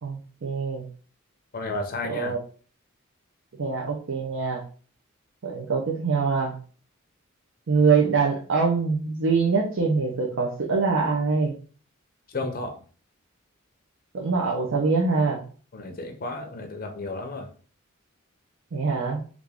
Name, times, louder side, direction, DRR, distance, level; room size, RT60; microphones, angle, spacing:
voice 1, 0.0-0.9 2.2-2.4 3.6-4.6 5.4-6.6 7.7-11.5 14.1-15.4 18.7-19.2, right 4 dB, 65° right, -1 dB, 0.6 m, -24 dB
voice 2, 1.5-2.4 12.3-12.8 15.7-17.5, left 2 dB, 45° left, 5 dB, 0.5 m, -32 dB
3.4 x 2.4 x 3.4 m, 0.41 s
head